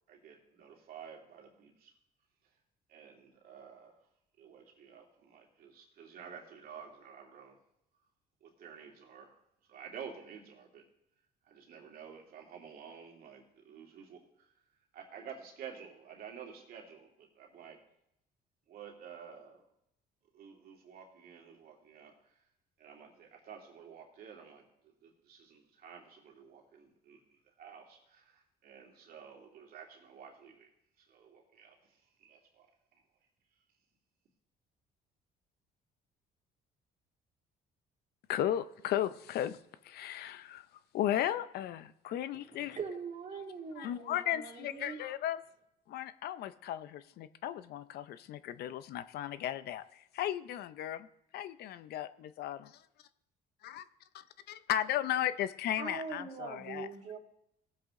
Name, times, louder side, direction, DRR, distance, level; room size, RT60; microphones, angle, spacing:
voice 1, 0.1-1.9 2.9-4.0 4.4-7.6 8.4-9.3 9.7-10.8 11.5-14.5 14.9-17.8 18.7-19.6 20.3-22.4 22.8-30.7 31.0-32.7 32.9-33.0, right 7 dB, 60° right, 0 dB, 2.5 m, -51 dB
voice 2, 38.3-39.6 39.8-40.7 40.9-42.8 43.8-45.4 45.9-51.1 51.3-52.8 53.6-53.9 54.1-56.9, left 11 dB, 70° left, 14 dB, 0.6 m, -35 dB
voice 3, 42.5-45.0 55.8-57.2, right 5 dB, 45° right, 1 dB, 2.5 m, -42 dB
17.5 x 7.7 x 3.8 m, 0.78 s
cardioid pair, 110°, 17 cm